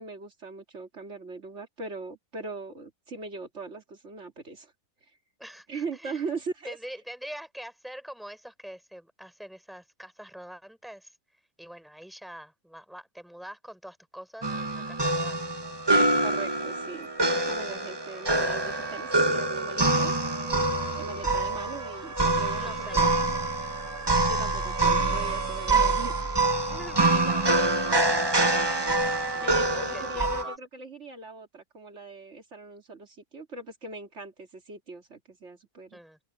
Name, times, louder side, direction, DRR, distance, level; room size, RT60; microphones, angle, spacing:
voice 1, 0.0-4.7 5.7-6.8 16.2-20.1 21.0-23.1 24.3-26.1 29.3-36.0, right 3 dB, 55° right, 2.8 m, -40 dB
voice 2, 5.4-6.2 6.7-11.1 11.6-15.4 22.6-23.6 25.7-26.0 26.6-27.8 29.3-30.5 35.9-36.2, equal, ahead, 4.6 m, -45 dB
sound 1, 14.4-30.4, right 2 dB, 20° right, 1.0 m, -26 dB
sound 2, 15.4-30.6, right 4 dB, 85° right, 3.2 m, -41 dB
open air
omnidirectional pair, 1.5 m